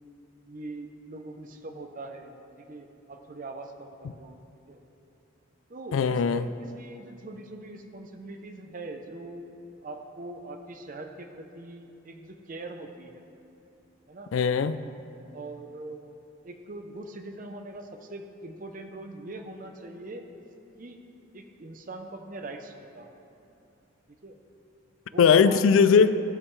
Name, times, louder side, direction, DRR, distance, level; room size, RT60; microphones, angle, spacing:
voice 1, 0.5-4.4 4.7-4.8 5.7-9.5 9.8-13.2 14.1-14.3 15.3-16.0 16.4-20.3 20.8-21.0 21.3-23.2 24.2-24.4 25.1-25.6, right 2 dB, 45° right, 5 dB, 0.7 m, -42 dB
voice 2, 5.9-6.4 14.3-14.8 25.2-26.2, left 6 dB, 85° left, 13 dB, 0.4 m, -19 dB
15.5 x 5.4 x 3.2 m, 2.7 s
head